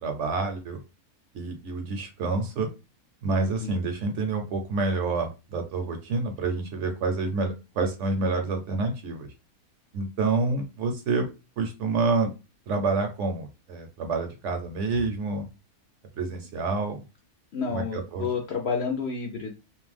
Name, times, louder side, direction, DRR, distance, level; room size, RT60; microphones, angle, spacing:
voice 1, 0.0-0.8 1.3-2.7 3.2-9.3 9.9-11.3 11.6-12.3 12.7-15.5 16.1-17.0 17.7-18.3, right 3 dB, 65° right, 5 dB, 0.8 m, -28 dB
voice 2, 17.5-19.5, left 5 dB, 65° left, 2 dB, 0.7 m, -30 dB
2.5 x 2.2 x 3.2 m, 0.28 s
omnidirectional pair, 1.5 m